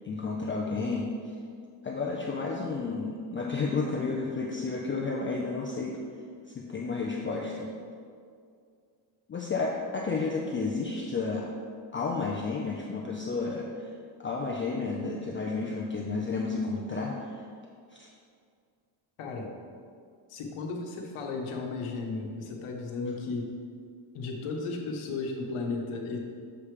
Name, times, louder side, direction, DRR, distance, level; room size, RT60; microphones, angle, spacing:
voice 1, 0.0-1.1 1.8-6.0 6.5-7.7 9.3-11.5 11.9-13.9 14.2-17.4 17.9-18.1, left 4 dB, 25° left, -2 dB, 0.4 m, -31 dB
voice 2, 19.2-19.5 20.3-23.5 24.1-26.2, left 3 dB, 90° left, 1 dB, 1.0 m, -34 dB
7.0 x 3.3 x 4.9 m, 2.2 s
cardioid pair, 150°, 49 cm